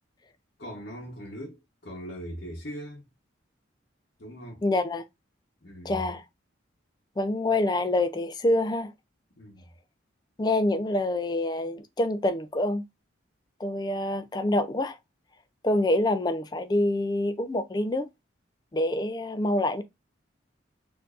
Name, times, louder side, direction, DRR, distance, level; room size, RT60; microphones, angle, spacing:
voice 1, 0.6-3.0 4.2-4.6 5.6-6.0 9.4-9.6, equal, 50° left, 0.9 m, -40 dB
voice 2, 4.6-5.0 5.8-6.2 7.2-8.9 10.4-12.8 13.6-15.0 15.6-18.1 18.7-19.8, left 1 dB, 20° left, 0.3 m, -26 dB
4.4 x 2.6 x 2.4 m
head